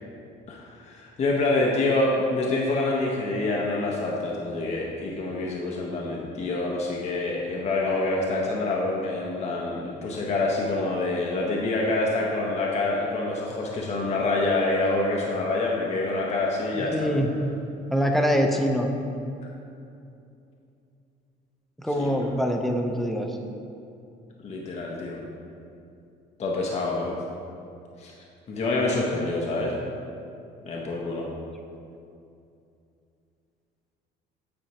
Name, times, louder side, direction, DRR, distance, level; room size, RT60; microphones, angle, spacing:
voice 1, 0.5-17.1 22.0-22.1 24.4-25.2 26.4-27.1 28.0-28.1 28.5-29.8 30.6-31.3, left 2 dB, 40° left, -2 dB, 0.8 m, -26 dB
voice 2, 16.7-17.3 17.9-18.9 21.8-23.4, equal, ahead, 2 dB, 0.5 m, -24 dB
8.6 x 4.1 x 2.9 m, 2.6 s
cardioid pair, 110°, 17 cm